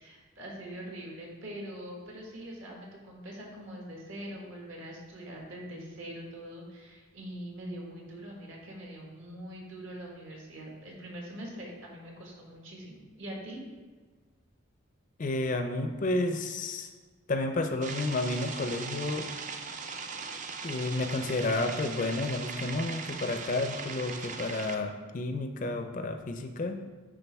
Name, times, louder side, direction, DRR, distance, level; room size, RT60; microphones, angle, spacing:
voice 1, 0.0-13.6, right 1 dB, 65° right, -1 dB, 1.5 m, -43 dB
voice 2, 15.2-16.9 17.3-19.3 20.6-26.8, left 2 dB, 35° left, 7 dB, 0.4 m, -31 dB
sound 1, 17.8-24.8, right 5 dB, 35° right, 0.4 m, -39 dB
10.0 x 3.7 x 3.4 m, 1.4 s
head